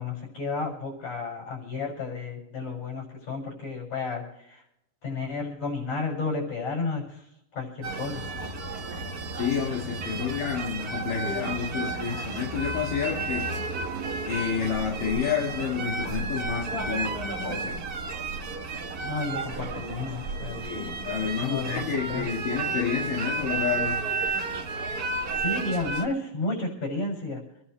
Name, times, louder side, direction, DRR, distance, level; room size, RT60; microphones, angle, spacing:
voice 1, 0.0-4.6 5.0-7.2 7.5-8.2 19.0-20.6 21.4-22.3 25.4-27.4, left 3 dB, 55° left, -1 dB, 8.0 m, -32 dB
sound 1, 7.8-26.1, right 4 dB, 50° right, 1.1 m, -32 dB
voice 2, 9.3-13.6 14.3-17.8 20.5-24.0, left 7 dB, 80° left, -2 dB, 3.6 m, -30 dB
27.0 x 11.5 x 3.3 m, 0.80 s
omnidirectional pair, 3.8 m